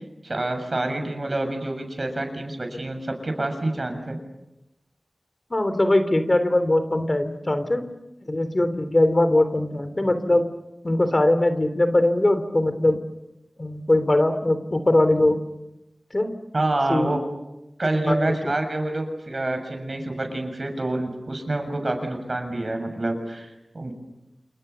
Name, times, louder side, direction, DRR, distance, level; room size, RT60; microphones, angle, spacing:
voice 1, 0.2-4.2 16.5-17.2 17.8-23.9, right 2 dB, 55° right, 6 dB, 7.0 m, -27 dB
voice 2, 5.5-7.9 8.3-10.5 10.8-13.0 13.6-15.4 16.1-16.3 16.9-17.1 18.1-18.5, left 1 dB, 40° left, 10 dB, 3.3 m, -21 dB
29.5 x 28.0 x 7.0 m, 0.91 s
wide cardioid pair, 50°, 0 cm